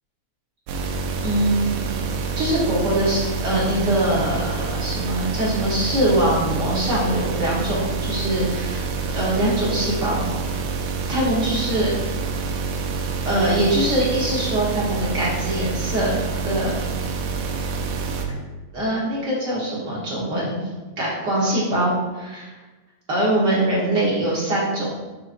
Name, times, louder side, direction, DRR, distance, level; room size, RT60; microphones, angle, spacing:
sound 1, 0.7-18.3, right 4 dB, 85° right, 2.3 m, -27 dB
voice 1, 1.2-1.7 2.3-8.8 9.1-10.2 11.1-11.9 13.2-16.1 16.4-16.7 17.4-17.5 18.7-20.7 21.0-22.5 23.1-24.9, right 1 dB, 60° right, -7 dB, 1.1 m, -22 dB
6.5 x 5.9 x 2.5 m, 1.2 s
omnidirectional pair, 3.7 m